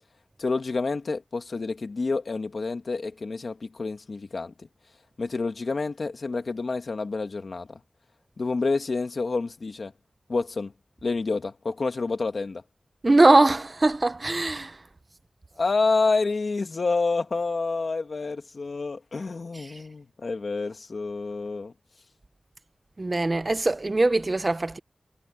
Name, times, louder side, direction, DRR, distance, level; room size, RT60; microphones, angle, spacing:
voice 1, 0.4-4.5 5.2-7.8 8.4-9.9 10.3-10.7 11.0-12.6 15.6-21.7, left 3 dB, 65° left, 2.1 m, -28 dB
voice 2, 13.0-14.8 23.0-24.8, right 2 dB, 40° right, 0.9 m, -21 dB
wide cardioid pair, 75°, 0 cm